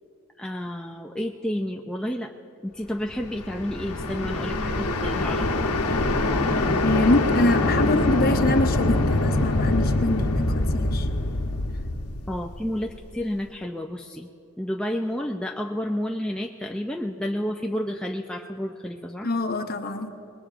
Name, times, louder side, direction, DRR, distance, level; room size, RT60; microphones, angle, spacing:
voice 1, 0.4-2.3 2.6-5.8 12.3-14.3 14.6-19.3, equal, 5° left, 1 dB, 0.3 m, -30 dB
sound 1, 3.1-13.1, left 2 dB, 85° left, 1.0 m, -24 dB
voice 2, 6.8-11.1 19.2-20.1, left 2 dB, 40° left, 6 dB, 0.8 m, -25 dB
26.0 x 21.0 x 2.5 m, 2.8 s
head